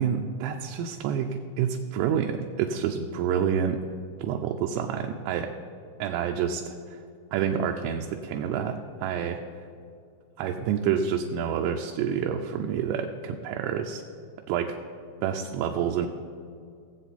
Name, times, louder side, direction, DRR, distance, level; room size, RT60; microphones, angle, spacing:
voice 1, 0.0-3.8 4.2-5.5 6.0-7.0 7.3-9.4 10.4-14.0 14.5-14.8 15.2-16.1, right 8 dB, 85° right, 3 dB, 3.0 m, -28 dB
19.0 x 7.9 x 4.1 m, 2.4 s
omnidirectional pair, 5.9 m